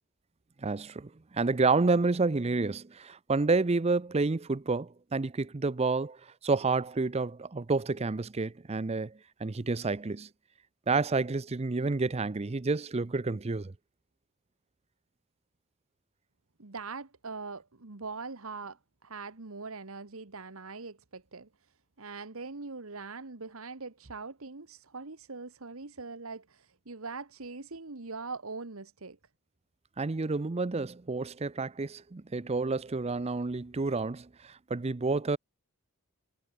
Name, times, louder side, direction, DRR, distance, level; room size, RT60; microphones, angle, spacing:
voice 1, 0.6-10.3 10.9-13.7 30.0-35.4, right 3 dB, 30° right, 0.5 m, -29 dB
voice 2, 16.6-21.5 22.0-29.2, right 4 dB, 70° right, 1.4 m, -42 dB
head